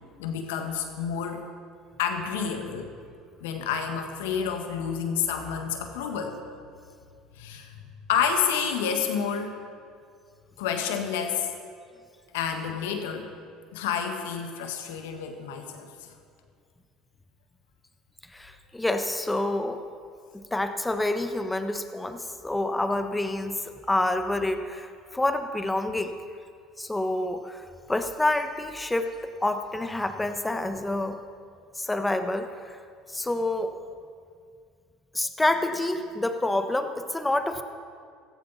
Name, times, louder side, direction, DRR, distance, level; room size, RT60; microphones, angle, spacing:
voice 1, 0.2-1.4 2.0-2.9 3.4-6.4 7.3-7.7 8.1-9.6 10.6-11.5 12.3-13.3 13.7-15.9, left 7 dB, 80° left, 5 dB, 1.6 m, -29 dB
voice 2, 18.3-19.8 20.5-26.1 26.8-29.1 29.4-31.2 31.8-32.7 33.1-33.7 35.1-37.6, left 2 dB, 10° left, 7 dB, 1.2 m, -28 dB
17.0 x 14.5 x 4.1 m, 2.2 s
hypercardioid pair, 75°, 0 cm